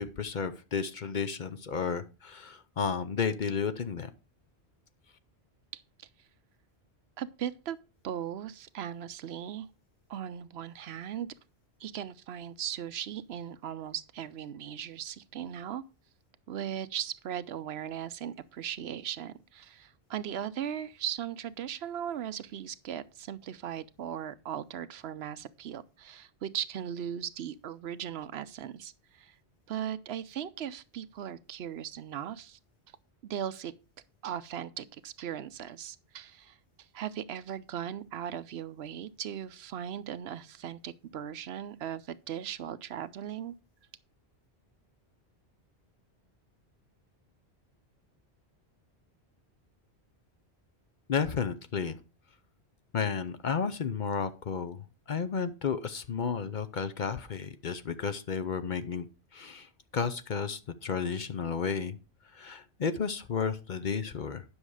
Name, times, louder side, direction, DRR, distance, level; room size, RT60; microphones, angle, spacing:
voice 1, 0.0-4.1 51.1-52.0 52.9-59.1 59.3-62.0 62.3-64.4, left 6 dB, 50° left, 0.8 m, -32 dB
voice 2, 5.7-6.1 7.2-7.8 8.0-9.7 10.1-11.3 11.8-15.8 16.5-29.4 29.7-32.6 33.2-33.7 34.2-36.6 36.9-43.5, right 9 dB, 70° right, 0.9 m, -38 dB
9.9 x 6.2 x 4.8 m
omnidirectional pair, 1.1 m